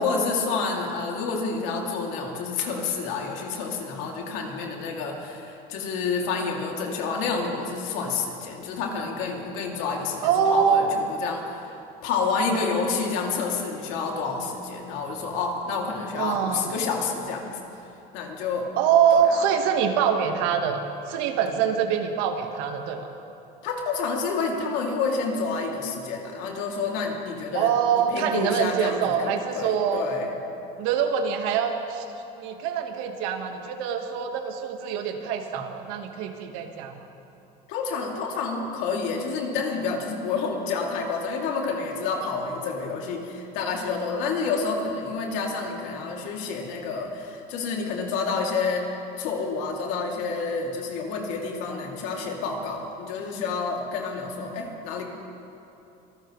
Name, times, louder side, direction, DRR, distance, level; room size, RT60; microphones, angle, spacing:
voice 1, 0.0-11.8 12.0-17.6 18.1-18.7 19.1-19.5 23.6-30.3 37.7-48.8 49.2-55.0, left 4 dB, 75° left, 0 dB, 2.6 m, -29 dB
voice 2, 10.2-10.9 16.1-16.7 18.8-20.8 21.1-23.1 27.5-30.0 30.8-32.0 32.3-37.0 51.7-51.8 54.4-54.6, right 7 dB, 80° right, 5 dB, 1.4 m, -24 dB
25.0 x 13.5 x 3.1 m, 2.9 s
supercardioid pair, 105°, 20 cm